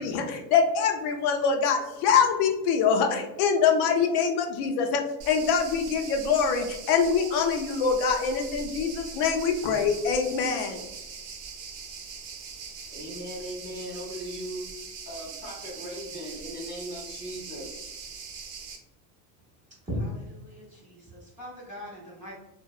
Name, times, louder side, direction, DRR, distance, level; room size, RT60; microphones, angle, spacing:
voice 1, 0.0-10.8, left 6 dB, 70° left, 4 dB, 0.5 m, -24 dB
sound 1, 5.2-18.8, right 5 dB, 85° right, 0.7 m, -41 dB
voice 2, 12.9-17.8, equal, 25° left, -3 dB, 0.6 m, -39 dB
voice 3, 19.9-22.3, equal, 15° right, -7 dB, 0.5 m, -37 dB
2.7 x 2.0 x 2.2 m, 0.95 s
cardioid pair, 160°, 46 cm